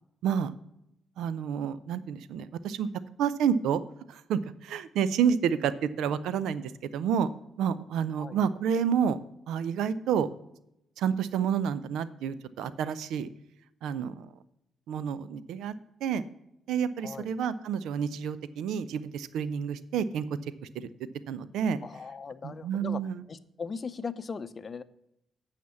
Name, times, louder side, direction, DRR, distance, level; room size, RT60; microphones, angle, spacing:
voice 1, 1.2-2.9 3.2-3.8 4.1-7.3 7.6-9.2 9.5-10.3 11.0-13.3 13.8-14.3 14.9-15.7 16.0-16.2 16.7-20.3 20.7-20.9 21.3-21.8 22.4-23.2, right 7 dB, 70° right, 16 dB, 0.5 m, -29 dB
voice 2, 21.8-23.0 23.3-24.8, left 5 dB, 45° left, 14 dB, 0.6 m, -38 dB
9.3 x 5.8 x 7.0 m, 0.83 s
hypercardioid pair, 45°, 0 cm